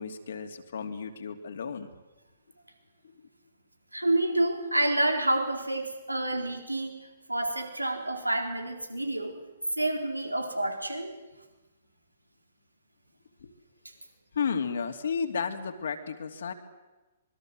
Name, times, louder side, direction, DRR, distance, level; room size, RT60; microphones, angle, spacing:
voice 1, 0.0-1.9 13.4-13.5 14.3-16.5, left 6 dB, 60° left, 6 dB, 2.8 m, -33 dB
voice 2, 3.9-6.9 7.3-9.4 9.7-11.1, right 1 dB, 90° right, 4 dB, 4.0 m, -28 dB
25.5 x 23.0 x 7.8 m, 1.1 s
figure-of-eight pair, 120°, 0 cm